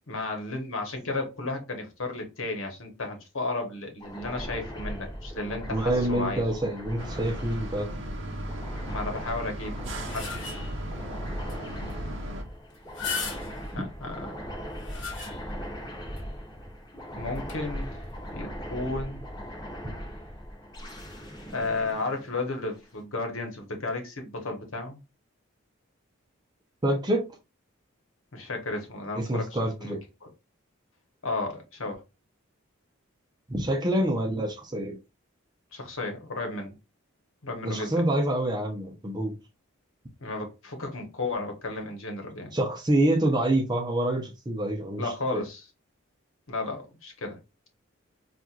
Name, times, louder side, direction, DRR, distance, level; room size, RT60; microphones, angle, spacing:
voice 1, 0.1-6.5 8.9-9.7 10.0-10.6 13.7-14.3 17.2-18.0 18.3-19.2 21.5-25.0 28.3-29.9 30.2-30.3 31.2-32.0 35.7-36.7 37.4-38.0 40.2-42.5 45.0-45.6 46.5-47.4, left 2 dB, 75° left, 1.1 m, -33 dB
sound 1, 4.0-22.9, equal, 20° left, 1.0 m, -39 dB
voice 2, 5.7-7.9 13.7-13.8 26.8-27.3 29.2-30.0 33.5-35.0 37.6-39.3 42.5-45.0 45.3-45.4, right 1 dB, 20° right, 0.6 m, -26 dB
sound 2, 7.0-12.4, right 1 dB, 65° right, 0.7 m, -36 dB
sound 3, 9.7-10.9 11.5-11.6 11.9-12.0 12.7-13.8 14.5-15.7 16.2-16.3 17.3-17.5, left 5 dB, 60° left, 1.2 m, -37 dB
4.2 x 2.5 x 2.4 m
head